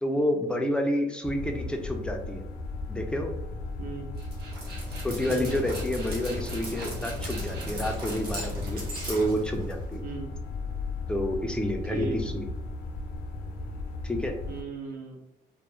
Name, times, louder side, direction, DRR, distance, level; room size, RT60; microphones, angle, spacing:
voice 1, 0.0-2.4 2.9-3.3 5.0-8.8 9.1-10.0 11.1-12.5 14.0-14.4, equal, 5° left, 3 dB, 0.4 m, -29 dB
sound 1, 1.2-14.6, left 3 dB, 70° left, 0.5 m, -36 dB
voice 2, 3.8-4.1 5.2-5.6 10.0-10.3 11.9-12.4 14.5-15.2, right 4 dB, 55° right, -1 dB, 0.9 m, -36 dB
Dog, 4.2-10.0, right 1 dB, 75° right, 1.0 m, -38 dB
2.4 x 2.0 x 2.9 m, 0.89 s
cardioid pair, 110°, 17 cm